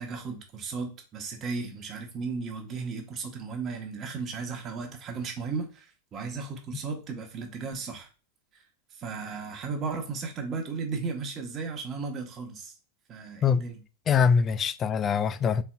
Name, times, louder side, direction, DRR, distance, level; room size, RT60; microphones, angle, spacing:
voice 1, 0.0-8.1 8.5-8.6 8.9-12.7 13.1-13.8, right 4 dB, 30° right, 1.1 m, -35 dB
voice 2, 14.1-15.6, left 6 dB, 25° left, 0.3 m, -23 dB
4.3 x 4.0 x 2.3 m
figure-of-eight pair, 90°, 0 cm